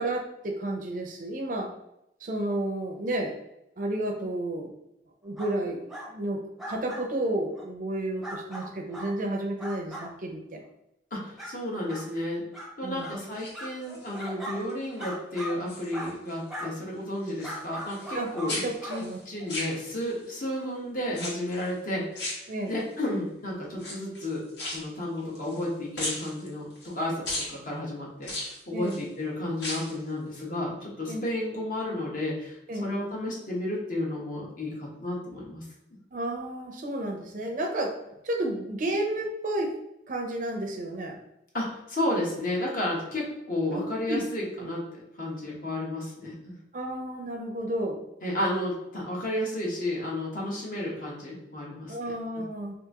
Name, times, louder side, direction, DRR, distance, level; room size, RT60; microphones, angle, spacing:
voice 1, 0.0-1.7 2.2-3.3 3.8-4.7 5.2-6.4 6.7-10.6 12.8-13.1 18.1-19.2 22.5-22.8 28.7-29.0 31.1-31.2 32.7-32.9 36.1-37.9 38.2-39.7 40.1-41.2 43.7-44.2 46.7-48.0 51.9-52.7, right 1 dB, 45° right, 2 dB, 0.5 m, -31 dB
sound 1, 5.4-5.6 5.9-6.1 6.6-7.1 7.5-7.6 8.2-9.1 9.6-10.1 10.6-10.7 11.4-11.5 11.9-12.0 12.5-12.7 13.0-13.2 13.5-14.6 15.0-15.5 15.9-16.1 16.5-16.7 17.4-18.5 18.8-19.0 19.5-19.6, equal, ahead, 0.6 m, -38 dB
voice 2, 11.1-12.4 12.8-24.4 24.7-27.2 27.5-35.6 41.5-46.5 48.2-52.1, left 1 dB, 50° left, -3 dB, 1.0 m, -32 dB
sound 2, 13.2-14.2 14.7-15.1 15.4-16.4 16.7-18.2 18.5-20.2 21.1-21.7 22.1-23.0 23.7-25.7 25.9-26.9 27.2-27.5 28.2-29.0 29.5-30.0 30.3-30.4, left 1 dB, 75° left, 1.3 m, -36 dB
2.8 x 2.5 x 3.6 m, 0.84 s
head